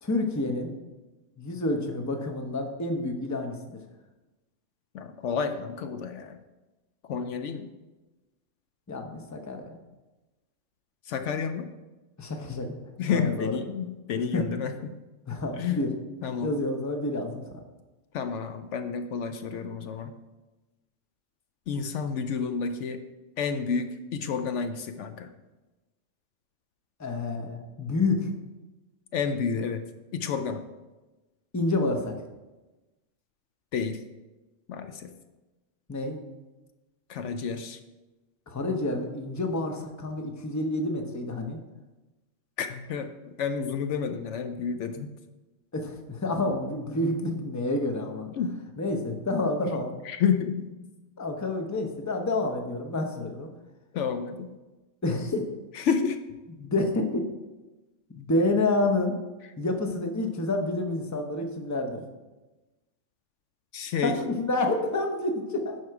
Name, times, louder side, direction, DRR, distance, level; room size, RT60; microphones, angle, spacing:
voice 1, 0.0-0.7 1.4-3.8 8.9-9.7 12.2-12.8 13.1-13.5 14.3-14.4 15.3-15.9 16.4-17.6 27.0-28.3 31.5-32.2 35.9-36.2 38.5-41.6 45.7-48.3 48.8-49.9 51.2-53.5 55.0-55.4 56.6-57.3 58.2-59.2 59.6-62.0 64.0-65.8, left 2 dB, 15° left, 4 dB, 0.7 m, -28 dB
voice 2, 4.9-6.4 7.0-7.7 11.0-11.7 13.0-14.9 15.6-15.9 16.2-16.6 18.1-20.1 21.7-23.0 23.4-25.3 29.1-29.8 30.1-30.6 33.7-34.0 34.7-35.1 37.1-37.8 42.6-45.1 48.4-48.6 50.0-50.7 53.9-54.5 55.7-56.2 63.7-64.2, left 6 dB, 70° left, 9 dB, 0.9 m, -30 dB
11.0 x 4.6 x 4.7 m, 1.1 s
omnidirectional pair, 1.3 m